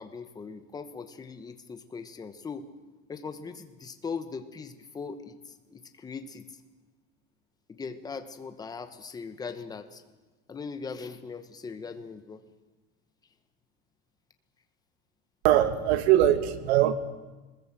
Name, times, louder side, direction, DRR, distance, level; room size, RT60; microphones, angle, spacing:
voice 1, 0.0-2.7 3.1-6.6 7.7-10.0 10.5-12.4, left 5 dB, 10° left, 8 dB, 1.1 m, -40 dB
voice 2, 15.4-16.9, right 12 dB, 90° right, 11 dB, 1.7 m, -21 dB
22.5 x 20.5 x 7.6 m, 1.2 s
cardioid pair, 175°, 32 cm